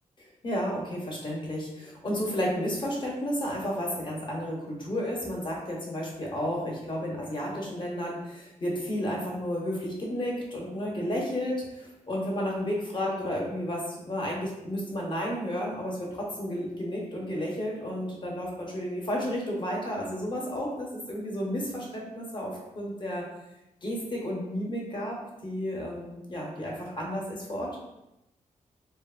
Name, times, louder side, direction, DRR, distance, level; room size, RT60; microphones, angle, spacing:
voice 1, 0.2-23.3 23.8-27.7, equal, 35° left, -2 dB, 0.7 m, -32 dB
2.9 x 2.1 x 2.3 m, 0.93 s
wide cardioid pair, 110°, 13 cm